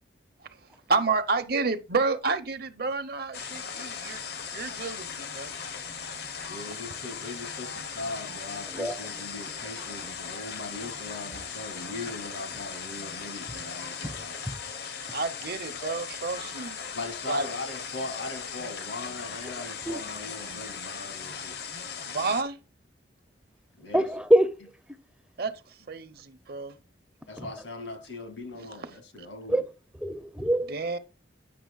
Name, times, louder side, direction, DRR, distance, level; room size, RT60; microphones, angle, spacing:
voice 1, 0.9-4.2 4.5-5.5 15.1-16.8 17.3-17.5 22.1-22.6 25.4-25.5 25.9-26.8 28.6-28.9 30.7-31.0, right 4 dB, 55° right, 0.8 m, -30 dB
sound 1, 3.3-22.4, left 6 dB, 60° left, 0.8 m, -38 dB
voice 2, 6.5-14.4 16.9-21.6 23.7-24.1 27.3-29.7, left 2 dB, 80° left, 2.1 m, -39 dB
voice 3, 23.9-24.5 27.4-27.5 29.5-29.6 30.0-30.7, right 1 dB, 5° right, 0.5 m, -24 dB
9.3 x 5.9 x 2.3 m
head